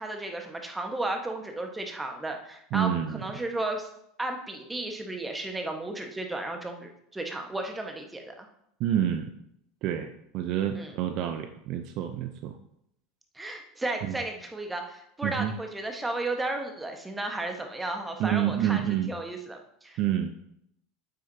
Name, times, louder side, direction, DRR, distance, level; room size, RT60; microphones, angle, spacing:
voice 1, 0.0-3.9 4.2-8.5 10.7-10.9 13.3-20.0, right 2 dB, 10° right, 3 dB, 1.4 m, -34 dB
voice 2, 2.7-3.2 8.8-9.3 9.8-12.5 14.1-14.2 15.2-15.5 18.2-19.1 20.0-20.3, right 10 dB, 50° right, 8 dB, 0.6 m, -28 dB
9.1 x 7.7 x 2.8 m, 0.75 s
figure-of-eight pair, 80°, 0 cm